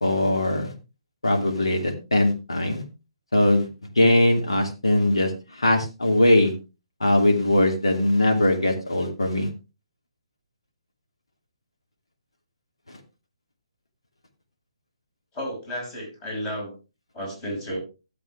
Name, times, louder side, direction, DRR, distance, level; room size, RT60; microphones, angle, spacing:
voice 1, 0.0-0.7 1.2-2.8 3.3-3.7 4.0-5.3 5.6-6.5 7.0-9.5, left 1 dB, 70° left, 3 dB, 2.7 m, -20 dB
voice 2, 15.3-16.7 17.1-17.8, equal, 20° left, -1 dB, 5.9 m, -32 dB
13.5 x 7.7 x 3.4 m, 0.29 s
figure-of-eight pair, 135°, 3 cm